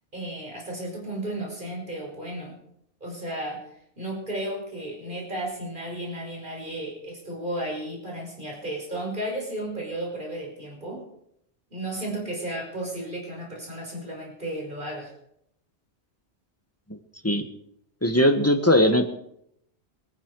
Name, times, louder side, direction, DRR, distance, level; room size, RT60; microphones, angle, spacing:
voice 1, 0.1-2.6 3.0-3.7 4.0-11.0 11.7-15.1, right 1 dB, 50° right, -1 dB, 5.7 m, -33 dB
voice 2, 18.0-19.1, left 1 dB, 15° left, 6 dB, 1.5 m, -19 dB
25.0 x 9.9 x 4.9 m, 0.74 s
omnidirectional pair, 1.1 m